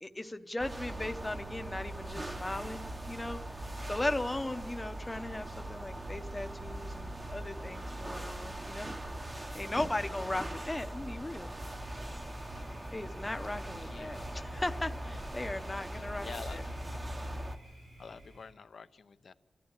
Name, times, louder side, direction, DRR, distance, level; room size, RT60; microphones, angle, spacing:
voice 1, 0.0-8.9 9.5-11.5 12.9-16.6, left 2 dB, 15° left, 7 dB, 0.8 m, -37 dB
sound 1, 0.6-17.6, right 1 dB, 20° right, 1.0 m, -41 dB
Thunder, 11.7-18.5, right 1 dB, 85° right, 7.2 m, -52 dB
voice 2, 13.8-14.4 15.9-17.0 18.0-19.3, left 5 dB, 70° left, 12 dB, 0.7 m, -48 dB
26.0 x 14.5 x 9.0 m, 1.2 s
wide cardioid pair, 140°, 0 cm